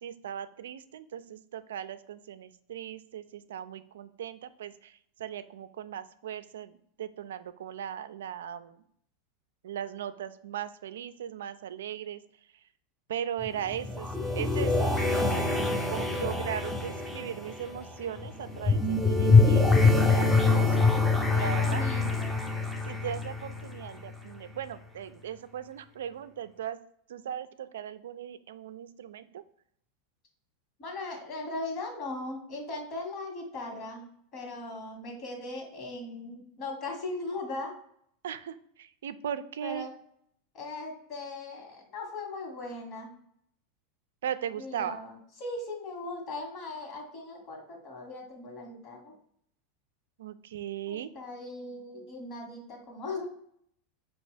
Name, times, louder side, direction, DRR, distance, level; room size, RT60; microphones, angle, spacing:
voice 1, 0.0-8.8 9.6-12.2 13.1-14.1 14.4-15.5 15.9-19.7 20.1-20.8 21.3-21.9 22.9-26.8 27.1-29.4 38.2-39.9 44.2-45.0 50.2-51.1, right 9 dB, 85° right, 12 dB, 0.3 m, -38 dB
sound 1, 13.4-24.2, left 3 dB, 10° left, 0.6 m, -25 dB
voice 2, 21.3-22.5 30.8-34.0 34.3-37.7 39.6-39.9 40.5-43.1 44.6-49.1 50.9-53.3, left 2 dB, 45° left, 0 dB, 1.7 m, -39 dB
5.3 x 2.8 x 3.3 m, 0.69 s
supercardioid pair, 120°, 0 cm